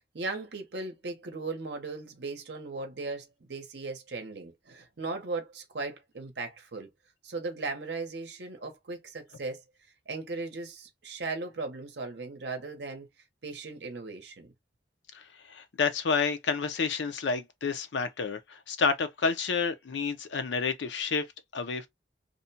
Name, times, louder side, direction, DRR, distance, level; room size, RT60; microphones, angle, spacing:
voice 1, 0.1-6.9 7.2-9.6 10.1-13.1 13.4-14.5, right 3 dB, 65° right, 0.7 m, -37 dB
voice 2, 15.5-21.2 21.5-21.9, left 5 dB, 75° left, 0.5 m, -29 dB
2.5 x 2.1 x 2.6 m
head